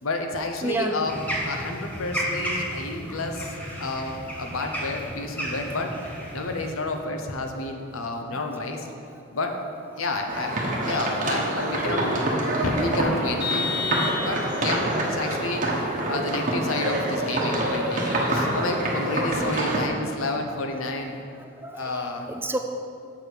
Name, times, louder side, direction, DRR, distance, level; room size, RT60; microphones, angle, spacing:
voice 1, 0.0-1.2 1.4-3.5 3.8-5.9 6.3-8.9 9.3-9.6 10.0-12.3 12.6-13.8 14.2-21.2 21.7-22.3, left 2 dB, 85° left, 4 dB, 0.8 m, -30 dB
voice 2, 0.6-1.0 8.4-8.5 19.4-19.5 21.6-22.6, right 2 dB, 10° right, 5 dB, 0.3 m, -30 dB
sound 1, 1.1-6.7, equal, 10° left, 1.1 m, -33 dB
sound 2, 10.3-19.9, right 1 dB, 40° right, 1.1 m, -26 dB
Vehicle horn car horn honking, 13.4-14.8, left 5 dB, 50° left, 0.7 m, -30 dB
7.0 x 6.7 x 4.7 m, 2.5 s
head